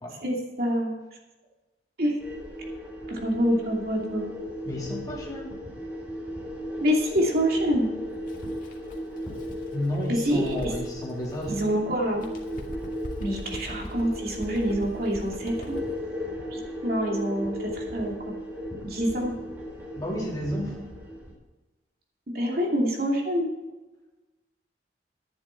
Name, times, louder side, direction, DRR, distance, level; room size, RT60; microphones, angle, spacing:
voice 1, 0.2-0.9 2.0-2.2 3.1-4.3 6.8-7.9 10.1-10.7 11.5-12.3 13.2-15.8 16.5-18.1 18.8-19.3 22.3-23.5, equal, 55° right, -1 dB, 2.7 m, -26 dB
sound 1, 2.2-21.3, equal, 10° right, 4.2 m, -36 dB
voice 2, 4.6-5.5 9.7-11.6 19.9-20.9, equal, 20° left, -3 dB, 3.1 m, -32 dB
Bird, 8.2-11.8 12.1-16.0, equal, 45° left, 2.0 m, -42 dB
11.5 x 10.5 x 4.6 m, 1.1 s
head